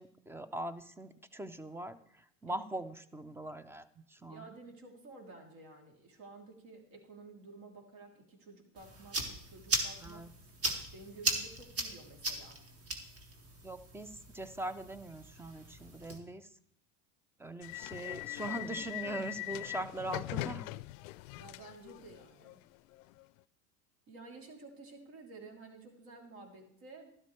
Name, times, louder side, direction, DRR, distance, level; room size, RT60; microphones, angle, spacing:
voice 1, 0.0-2.0 2.4-4.5 10.0-10.3 13.6-16.5 17.4-20.6, right 1 dB, 5° right, 14 dB, 0.4 m, -41 dB
voice 2, 4.3-10.3 10.9-12.6 21.4-22.6 24.1-27.1, right 3 dB, 50° right, 1 dB, 3.2 m, -52 dB
sound 1, 8.8-16.2, right 2 dB, 30° right, 1.9 m, -38 dB
sound 2, 17.6-23.2, left 19 dB, 60° left, 0.5 m, -41 dB
12.0 x 12.0 x 3.2 m, 0.69 s
hypercardioid pair, 95°, 45 cm